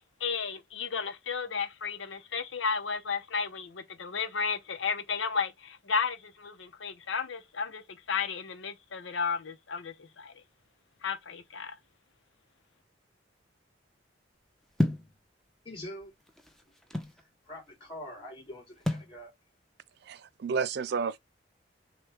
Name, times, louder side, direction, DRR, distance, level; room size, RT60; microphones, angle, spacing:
voice 1, 0.2-10.4 11.0-11.8, left 5 dB, 85° left, 0.8 m, -33 dB
sound 1, 14.8-15.1 16.0-17.2 18.9-19.1, left 1 dB, ahead, 0.6 m, -30 dB
voice 2, 15.6-16.1 16.7-16.8 17.2-19.3, left 1 dB, 30° left, 3.1 m, -44 dB
voice 3, 20.1-21.2, right 5 dB, 60° right, 0.4 m, -31 dB
6.3 x 2.3 x 3.4 m
head